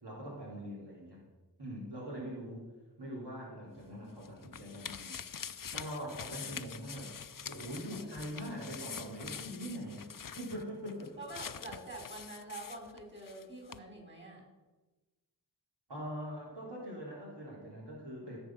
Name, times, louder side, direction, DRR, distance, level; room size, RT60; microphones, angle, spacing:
voice 1, 0.0-1.2 1.6-2.7 3.0-5.2 5.7-7.1 7.5-10.1 10.4-11.2 15.9-18.4, equal, 75° right, -5 dB, 3.2 m, -42 dB
sound 1, 3.8-13.4 13.7-13.8, left 7 dB, 55° left, 0.6 m, -45 dB
voice 2, 11.2-14.4, right 2 dB, 30° right, -1 dB, 5.0 m, -46 dB
16.0 x 7.1 x 5.9 m, 1.2 s
wide cardioid pair, 50°, 41 cm